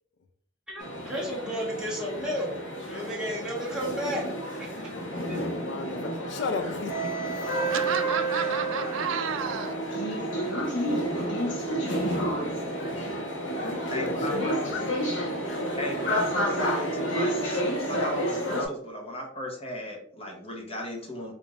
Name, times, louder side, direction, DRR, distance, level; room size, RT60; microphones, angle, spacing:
voice 1, 0.7-2.5 2.8-4.7 5.3-5.4, equal, 5° right, 1.2 m, -33 dB
sound 1, 0.8-18.7, right 1 dB, 80° left, 1.0 m, -30 dB
voice 2, 4.7-7.8 9.2-9.5 9.9-10.4 11.2-11.3 13.6-15.1, left 4 dB, 65° left, 0.4 m, -36 dB
voice 3, 7.7-9.8, right 7 dB, 90° right, 0.4 m, -31 dB
voice 4, 13.9-14.5 15.8-21.3, left 1 dB, 30° left, 0.8 m, -35 dB
4.9 x 2.5 x 2.4 m
head